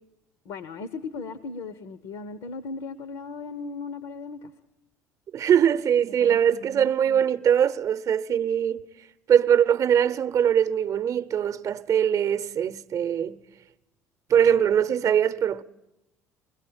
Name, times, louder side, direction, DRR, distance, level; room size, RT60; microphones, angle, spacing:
voice 1, 0.4-4.5 6.2-7.2, left 4 dB, 70° left, 0.9 m, -37 dB
voice 2, 5.3-8.8 9.3-13.4 14.3-15.6, right 9 dB, 45° right, 0.8 m, -22 dB
22.0 x 17.5 x 8.8 m
hypercardioid pair, 60°, 8 cm